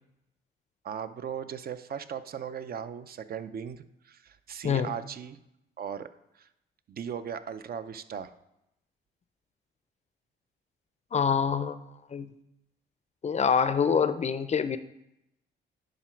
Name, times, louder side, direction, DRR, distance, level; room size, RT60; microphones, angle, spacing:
voice 1, 0.8-5.4 5.8-6.1 6.4-6.5 6.9-8.3, right 8 dB, 50° right, 11 dB, 0.5 m, -38 dB
voice 2, 4.6-5.0 11.1-11.8 12.1-12.3 13.2-14.8, left 6 dB, 35° left, 13 dB, 0.5 m, -25 dB
10.5 x 3.9 x 4.5 m, 0.84 s
cardioid pair, 90°, 20 cm